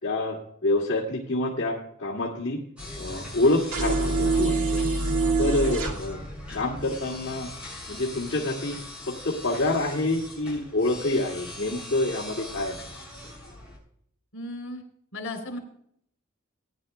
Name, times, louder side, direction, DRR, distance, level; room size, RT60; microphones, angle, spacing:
voice 1, 0.0-0.4 0.6-2.6 3.0-4.8 5.4-6.2 6.5-7.5 7.9-8.8 9.1-12.8, left 2 dB, 55° left, -6 dB, 2.1 m, -27 dB
sound 1, 2.8-13.8, left 1 dB, 5° right, 5.8 m, -41 dB
sound 2, 3.7-5.9, right 3 dB, 90° right, 2.0 m, -24 dB
voice 2, 4.6-5.1 14.3-14.8 15.1-15.6, left 2 dB, 75° left, 5 dB, 3.2 m, -36 dB
19.0 x 10.5 x 2.2 m, 0.67 s
head